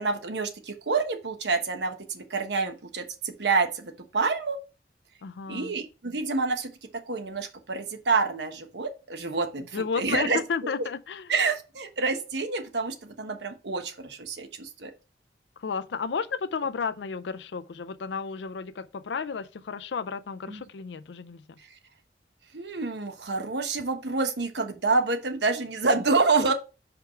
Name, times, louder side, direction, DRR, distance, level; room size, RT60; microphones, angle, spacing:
voice 1, 0.0-4.6 5.5-6.7 7.1-10.7 11.3-14.9 20.5-20.6 22.5-26.5, right 4 dB, 80° right, 1.2 m, -28 dB
voice 2, 5.2-5.7 9.7-11.3 15.6-21.6, left 5 dB, 85° left, 0.5 m, -32 dB
5.1 x 4.7 x 5.6 m
head